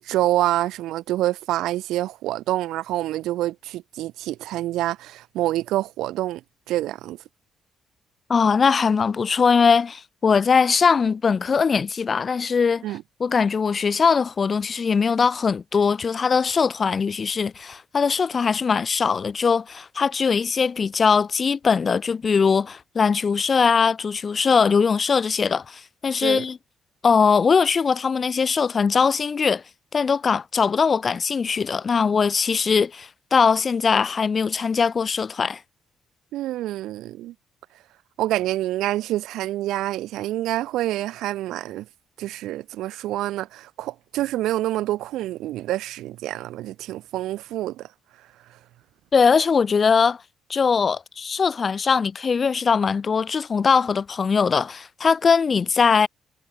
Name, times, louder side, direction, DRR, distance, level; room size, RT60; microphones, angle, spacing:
voice 1, 0.0-6.4 6.7-7.2 12.8-13.0 26.2-26.4 36.3-37.3 38.2-41.9 42.2-47.9, right 15 dB, 90° right, 0.5 m, -27 dB
voice 2, 8.3-12.8 13.2-26.6 27.0-29.6 29.9-35.6 49.1-50.2 50.5-56.1, left 5 dB, 40° left, 0.6 m, -21 dB
cardioid pair, 90°, 0 cm